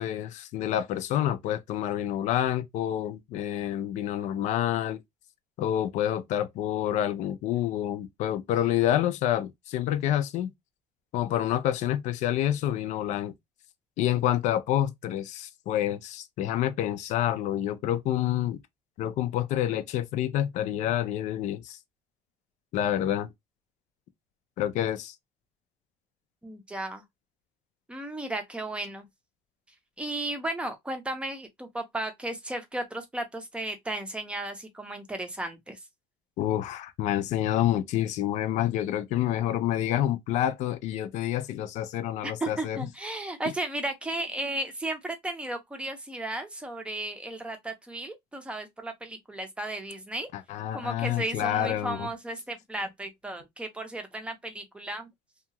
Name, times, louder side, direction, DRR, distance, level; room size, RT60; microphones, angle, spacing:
voice 1, 0.0-5.0 5.6-10.5 11.1-13.3 14.0-18.6 19.0-21.8 22.7-23.3 24.6-25.2 36.4-42.8 50.5-52.1, left 12 dB, 55° left, 0.5 m, -28 dB
voice 2, 26.4-27.0 27.9-29.1 30.0-35.8 42.2-50.3 50.7-55.1, right 1 dB, 10° right, 0.6 m, -34 dB
2.8 x 2.3 x 2.8 m
cardioid pair, 150°, 14 cm